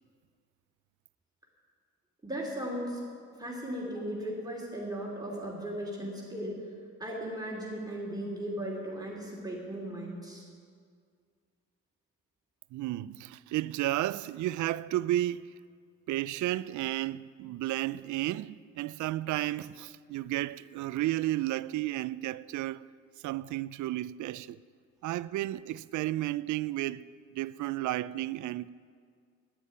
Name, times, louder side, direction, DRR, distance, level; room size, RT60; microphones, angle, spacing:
voice 1, 2.2-3.0 3.4-6.6 7.0-10.5, right 1 dB, 15° right, 3.2 m, -37 dB
voice 2, 12.7-15.6 16.1-22.9 23.2-24.6 25.0-27.1 27.3-28.7, right 15 dB, 75° right, 0.5 m, -32 dB
10.5 x 9.9 x 9.5 m
cardioid pair, 90°, 30 cm